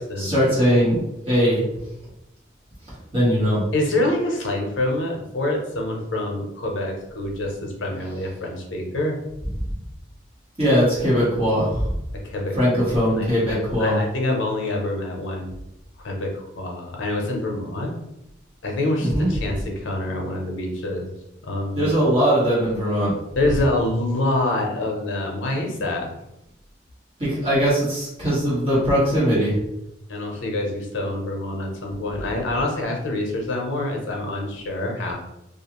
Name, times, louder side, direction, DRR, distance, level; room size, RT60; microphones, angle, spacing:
voice 1, 0.2-1.0 1.2-1.6 3.1-3.6 10.6-11.9 12.6-14.0 19.0-19.3 21.8-23.1 27.2-29.5, equal, 30° right, -9 dB, 1.1 m, -20 dB
voice 2, 3.7-9.2 12.1-12.6 13.2-15.5 16.0-18.0 18.6-21.2 21.4-21.9 23.4-26.1 30.1-35.1, left 1 dB, 90° left, 1 dB, 0.7 m, -26 dB
2.4 x 2.4 x 2.9 m, 0.87 s
head